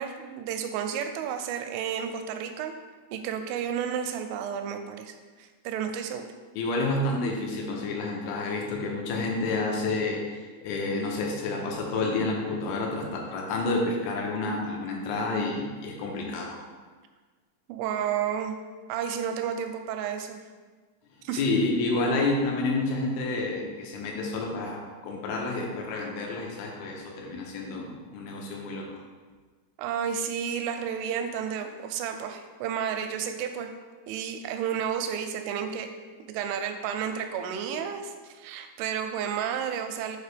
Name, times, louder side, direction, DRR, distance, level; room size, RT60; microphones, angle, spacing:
voice 1, 0.0-2.7 3.1-6.3 17.7-18.6 18.9-20.4 21.2-21.4 29.8-33.7 34.1-35.9 36.3-40.2, right 8 dB, 85° right, 6 dB, 3.0 m, -31 dB
voice 2, 6.5-16.6 21.3-29.0, left 2 dB, 80° left, 0 dB, 3.3 m, -29 dB
7.3 x 4.7 x 3.3 m, 1.4 s
omnidirectional pair, 5.5 m